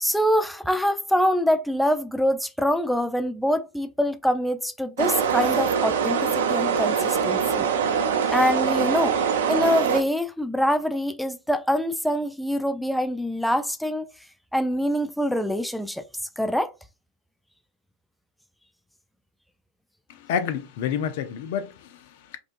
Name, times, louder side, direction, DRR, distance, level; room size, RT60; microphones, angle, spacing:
voice 1, 0.0-7.7 8.3-9.2 9.5-14.1 14.5-16.0 16.4-16.7, equal, ahead, 0.3 m, -24 dB
sound 1, 5.0-10.0, right 7 dB, 70° right, 0.8 m, -23 dB
voice 2, 20.1-22.4, left 8 dB, 60° left, 0.6 m, -29 dB
5.0 x 2.4 x 2.5 m
hypercardioid pair, 90°, 0 cm